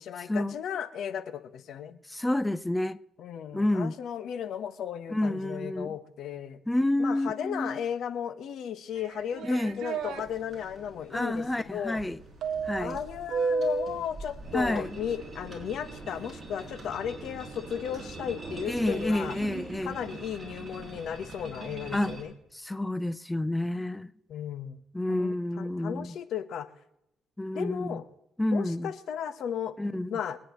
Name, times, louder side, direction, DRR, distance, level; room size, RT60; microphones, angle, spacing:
voice 1, 0.0-2.0 3.2-6.6 7.0-12.0 12.8-19.4 19.8-22.3 24.3-24.8 25.1-26.7 27.5-28.0 28.5-29.7 30.1-30.4, left 8 dB, 75° left, 1.1 m, -35 dB
voice 2, 2.1-3.0 3.5-3.9 5.1-5.9 6.7-7.8 9.4-9.8 11.1-12.2 12.6-13.0 14.5-14.9 18.7-19.9 21.9-22.1 22.5-24.1 24.9-26.2 27.4-28.0 28.4-28.9 29.8-30.2, left 1 dB, 10° left, 0.5 m, -29 dB
sound 1, 9.0-10.2 12.4-14.0, right 5 dB, 75° right, 1.6 m, -31 dB
sound 2, 10.0-22.2, right 3 dB, 30° right, 6.0 m, -43 dB
24.5 x 10.5 x 3.1 m
cardioid pair, 90°, 0 cm